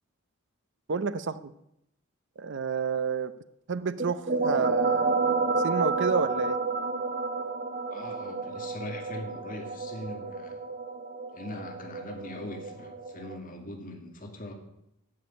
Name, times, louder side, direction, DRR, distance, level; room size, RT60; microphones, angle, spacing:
voice 1, 0.9-1.5 2.4-3.3 3.7-5.2 5.6-6.6, right 5 dB, 60° right, 13 dB, 0.7 m, -30 dB
sound 1, 4.0-13.4, right 4 dB, 40° right, 1.0 m, -30 dB
voice 2, 7.9-10.6 11.3-14.5, left 1 dB, 40° left, 3 dB, 2.2 m, -41 dB
15.5 x 6.3 x 9.9 m, 0.82 s
head